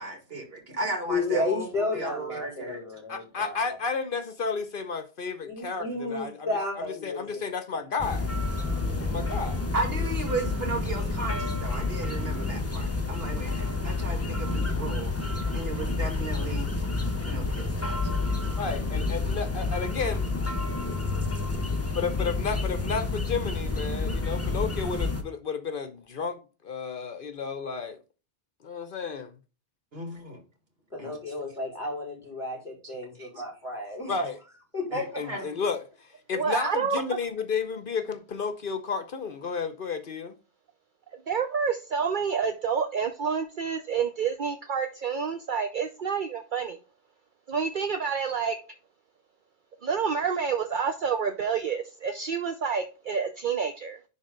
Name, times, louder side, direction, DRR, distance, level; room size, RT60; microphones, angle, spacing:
voice 1, 0.0-2.8 8.8-9.3 9.7-16.7 17.2-18.2 29.9-30.4 31.0-31.3 32.8-32.9 33.2-33.3 34.9-35.4, right 2 dB, 70° right, 2.3 m, -35 dB
voice 2, 1.1-3.8 5.4-7.4 8.6-8.8 30.9-34.1 34.7-35.2, left 2 dB, 5° right, 3.9 m, -32 dB
voice 3, 3.1-6.5 6.8-8.3 9.0-9.6 18.6-20.3 21.9-28.0 28.6-29.3 34.1-34.4 35.2-40.4, left 5 dB, 60° left, 0.9 m, -32 dB
sound 1, 8.0-25.2, left 3 dB, 15° left, 1.1 m, -29 dB
voice 4, 36.3-37.0 41.3-46.8 47.5-48.6 49.8-54.0, right 6 dB, 55° right, 0.9 m, -28 dB
11.0 x 3.7 x 3.8 m
omnidirectional pair, 1.0 m